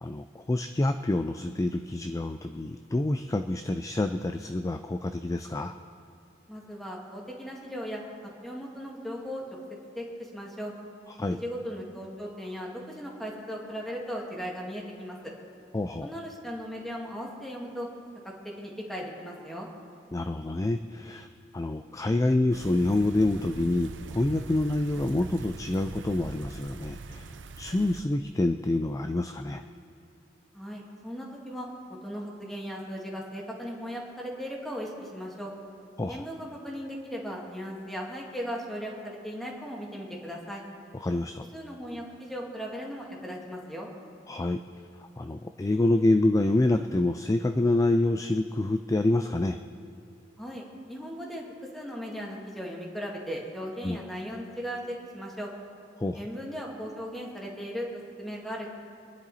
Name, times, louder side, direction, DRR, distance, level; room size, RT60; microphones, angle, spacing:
voice 1, 0.0-5.7 11.2-11.4 15.7-16.1 20.1-21.3 21.5-29.6 36.0-36.2 41.0-41.4 44.3-44.6 45.2-49.6 53.8-54.0 56.0-56.2, left 2 dB, 20° left, 7 dB, 0.4 m, -27 dB
voice 2, 6.5-8.0 8.4-9.4 10.0-10.7 11.3-15.3 16.0-17.9 18.2-19.7 30.5-35.5 36.1-40.6 41.5-43.9 50.4-55.5 56.1-58.7, equal, ahead, -2 dB, 2.0 m, -37 dB
sound 1, 22.5-28.0, right 3 dB, 90° right, 0.7 m, -42 dB
24.5 x 10.5 x 4.2 m, 2.5 s
head